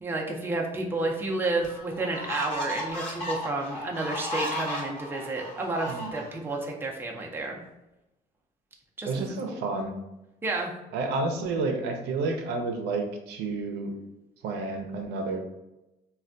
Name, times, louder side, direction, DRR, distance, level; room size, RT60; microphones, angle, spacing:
voice 1, 0.0-7.6 9.0-9.3 10.4-10.7, right 2 dB, 15° right, -1 dB, 0.5 m, -31 dB
sound 1, 1.0-1.1 1.6-6.6, equal, 40° left, 1.1 m, -34 dB
voice 2, 9.1-9.9 10.9-13.9 14.4-15.4, right 3 dB, 85° right, 3 dB, 0.6 m, -30 dB
3.2 x 2.2 x 2.5 m, 0.94 s
cardioid pair, 110°, 17 cm